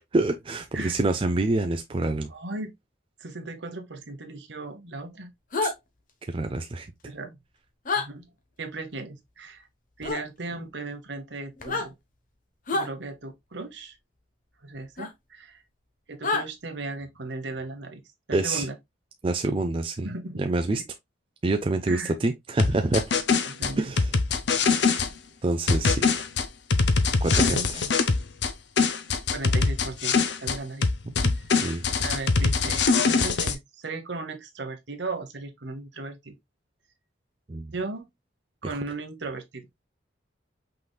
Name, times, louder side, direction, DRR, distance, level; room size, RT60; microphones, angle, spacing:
voice 1, 0.1-2.3 5.6-5.7 6.3-6.9 18.3-18.7 19.2-20.1 20.4-20.8 21.4-23.0 23.8-24.1 24.7-25.0 25.4-26.1 27.2-27.8 31.1-31.8 37.5-37.7 38.6-38.8, right 2 dB, 30° right, 0.4 m, -27 dB
voice 2, 2.3-2.7 3.2-5.3 7.0-7.3 8.0-8.2 8.6-9.7 10.0-11.9 12.7-13.9 14.6-15.6 16.1-18.0 18.3-18.8 20.0-20.4 20.7-20.8 21.9-22.1 23.4-23.9 27.3-27.9 29.3-30.9 31.5-31.6 32.0-36.4 37.7-38.1 38.6-39.7, right 3 dB, 65° right, 1.1 m, -36 dB
sound 1, 5.5-5.7 7.8-8.1 10.0-10.2 11.6-11.9 12.7-12.9 15.0-15.1 16.2-16.4, left 3 dB, 45° left, 1.0 m, -27 dB
sound 2, 22.6-25.1 25.7-28.5 28.8-30.6 30.8-33.5, left 4 dB, 65° left, 0.7 m, -23 dB
5.6 x 4.0 x 2.3 m
head